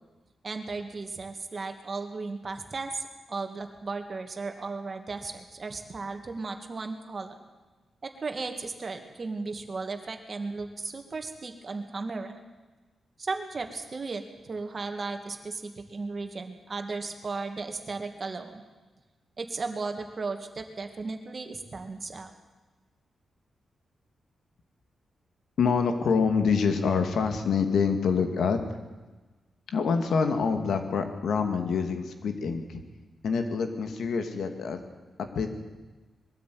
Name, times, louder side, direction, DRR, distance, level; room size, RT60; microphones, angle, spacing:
voice 1, 0.4-7.5 8.0-12.3 13.2-18.6 19.4-22.3, right 3 dB, 40° right, 6 dB, 2.3 m, -35 dB
voice 2, 25.6-28.6 29.7-32.8 33.2-34.8 35.2-35.6, left 5 dB, 80° left, 6 dB, 2.3 m, -26 dB
21.5 x 13.0 x 9.5 m, 1.2 s
cardioid pair, 100°, 0 cm